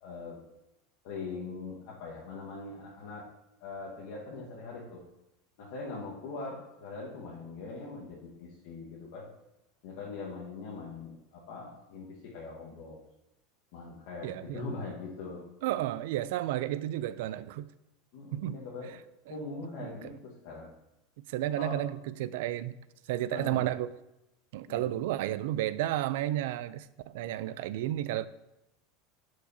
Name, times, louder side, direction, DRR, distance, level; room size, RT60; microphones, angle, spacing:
voice 1, 0.0-0.4 1.0-3.3 3.6-5.0 5.6-9.3 9.8-13.0 13.7-15.4 18.1-18.9 19.3-20.7 21.6-21.8 23.3-23.6 24.7-24.9, left 3 dB, 60° left, 1.3 m, -41 dB
voice 2, 14.2-14.6 15.6-17.7 18.3-18.6 19.8-20.1 21.3-22.7 23.1-23.9 24.5-28.3, right 13 dB, 65° right, 0.3 m, -32 dB
11.5 x 4.8 x 2.7 m
supercardioid pair, 170°, 0 cm